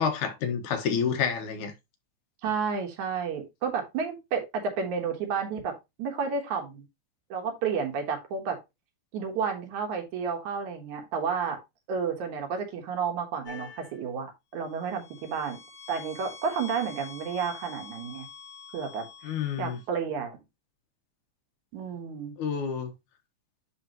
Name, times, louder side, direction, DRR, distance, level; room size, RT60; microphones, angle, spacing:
voice 1, 0.0-1.7 19.2-19.8 22.4-22.9, left 7 dB, 75° left, 2.6 m, -28 dB
voice 2, 2.4-6.8 7.3-8.6 9.1-11.6 11.9-15.6 15.9-18.3 18.7-20.3 21.7-22.3, right 6 dB, 70° right, 2.8 m, -31 dB
sound 1, 13.5-14.0 14.7-19.8, left 5 dB, 50° left, 1.9 m, -46 dB
11.0 x 3.8 x 2.9 m
omnidirectional pair, 3.6 m